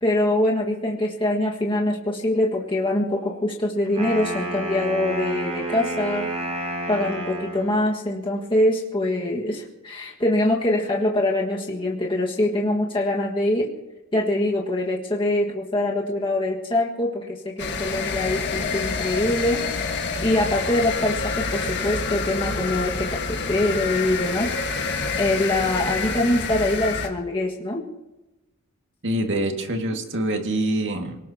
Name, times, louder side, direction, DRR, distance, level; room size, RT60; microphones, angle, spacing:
voice 1, 0.0-6.3 6.9-13.7 14.1-19.7 20.2-24.5 25.2-27.8, left 1 dB, 25° left, -2 dB, 1.7 m, -24 dB
Wind instrument woodwind instrument, 3.8-7.8, right 1 dB, 30° right, 6.6 m, -30 dB
sound 1, 17.6-27.1, left 4 dB, 55° left, 1.6 m, -27 dB
voice 2, 29.0-31.2, right 1 dB, 55° right, 3 dB, 2.0 m, -25 dB
27.0 x 18.5 x 2.9 m, 1.0 s
head